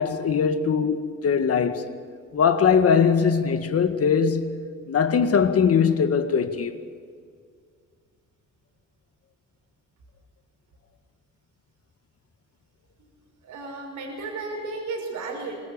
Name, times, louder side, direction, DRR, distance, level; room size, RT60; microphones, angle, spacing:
voice 1, 0.0-1.9 2.3-6.7, left 6 dB, 50° left, 1.9 m, -21 dB
voice 2, 13.4-15.6, right 3 dB, 80° right, 5.9 m, -33 dB
25.0 x 20.0 x 7.2 m
cardioid pair, 90°, 30 cm